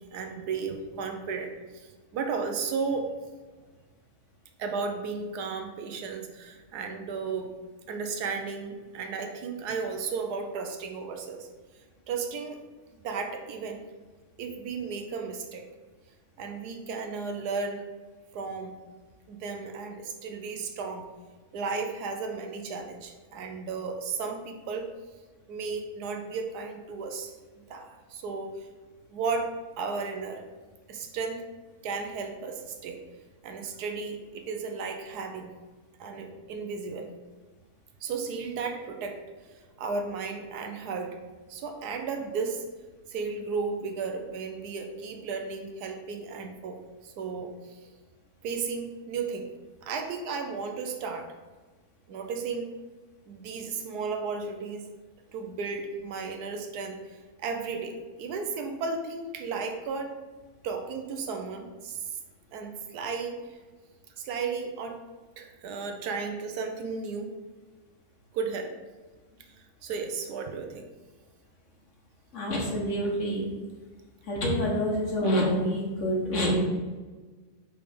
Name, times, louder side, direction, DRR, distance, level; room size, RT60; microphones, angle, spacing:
voice 1, 0.1-3.2 4.6-7.5 7.9-11.5 12.1-12.6 13.0-13.8 14.4-15.6 16.4-17.8 18.3-18.7 19.3-21.0 21.5-24.9 25.5-27.3 27.7-28.7 29.1-30.4 30.9-31.5 31.8-33.0 33.4-35.5 36.0-37.1 38.0-39.2 39.8-41.2 41.5-42.6 43.1-47.9 48.4-49.5 49.8-51.3 52.1-52.8 53.3-54.9 55.3-60.1 60.6-62.0 62.5-63.6 64.2-65.0 65.4-67.3 68.3-68.7 69.8-70.9, right 4 dB, 85° right, 5 dB, 1.3 m, -34 dB
voice 2, 72.3-73.4 74.3-76.6, equal, 55° left, -2 dB, 1.5 m, -27 dB
5.4 x 3.5 x 5.1 m, 1.3 s
omnidirectional pair, 1.6 m